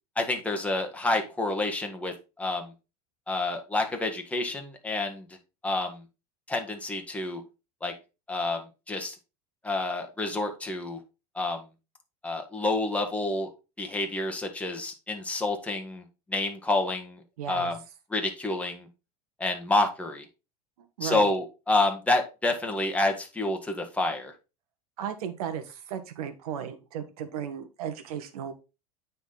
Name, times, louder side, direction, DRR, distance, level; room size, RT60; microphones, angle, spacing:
voice 1, 0.2-2.7 3.3-5.3 5.6-6.0 6.5-7.4 7.8-7.9 8.3-9.2 9.6-11.0 11.4-11.6 12.2-13.5 13.8-16.0 16.3-17.2 17.5-17.8 18.1-18.9 19.4-20.2 21.0-24.3, left 2 dB, 5° left, 3 dB, 1.7 m, -28 dB
voice 2, 17.4-17.7 21.0-21.3 25.0-28.5, right 8 dB, 75° right, 10 dB, 1.5 m, -35 dB
9.1 x 4.3 x 3.9 m, 0.28 s
hypercardioid pair, 100°, 19 cm